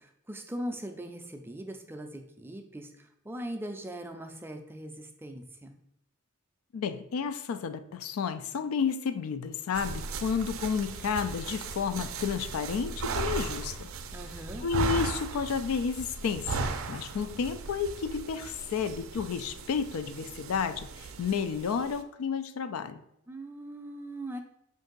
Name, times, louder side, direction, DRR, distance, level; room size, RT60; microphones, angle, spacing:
voice 1, 0.0-5.8 14.1-14.7 23.3-24.4, right 1 dB, 10° right, 5 dB, 0.4 m, -40 dB
voice 2, 6.7-13.9 14.6-23.0, left 6 dB, 85° left, 10 dB, 0.4 m, -31 dB
sound 1, 9.7-22.0, right 4 dB, 75° right, 0.4 m, -37 dB
5.3 x 2.6 x 3.8 m, 0.78 s
head